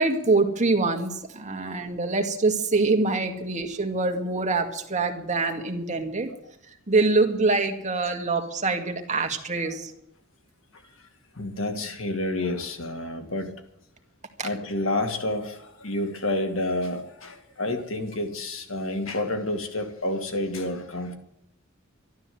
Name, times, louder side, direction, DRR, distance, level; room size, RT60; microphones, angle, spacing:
voice 1, 0.0-6.3 6.7-9.9 14.4-14.5, right 3 dB, 35° right, 2.1 m, -25 dB
voice 2, 11.4-13.6 14.4-21.2, left 1 dB, 70° left, 2.5 m, -29 dB
13.0 x 12.0 x 7.9 m
head